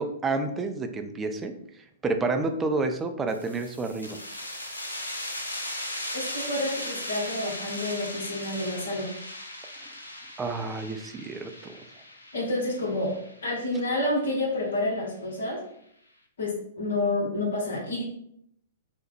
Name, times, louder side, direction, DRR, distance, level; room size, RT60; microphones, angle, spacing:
voice 1, 0.0-1.5 2.0-4.2 10.4-11.5, right 3 dB, 15° right, 6 dB, 0.3 m, -29 dB
sound 1, 3.3-14.6, left 1 dB, 85° left, 0.5 m, -38 dB
voice 2, 6.1-9.1 12.3-15.6 16.4-18.0, left 2 dB, 65° left, -1 dB, 0.9 m, -29 dB
3.3 x 2.1 x 3.1 m, 0.71 s
figure-of-eight pair, 110°, 0 cm